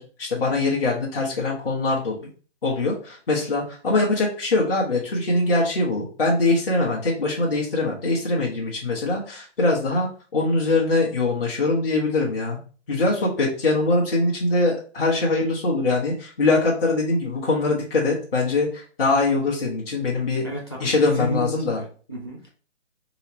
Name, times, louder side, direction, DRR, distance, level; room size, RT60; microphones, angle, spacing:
voice 1, 0.0-2.2 2.6-12.6 12.9-20.5 20.8-21.8, left 2 dB, 50° left, -4 dB, 1.2 m, -22 dB
voice 2, 20.4-22.5, equal, 20° left, -2 dB, 0.6 m, -33 dB
5.5 x 2.0 x 4.2 m, 0.40 s
hypercardioid pair, 170°, 36 cm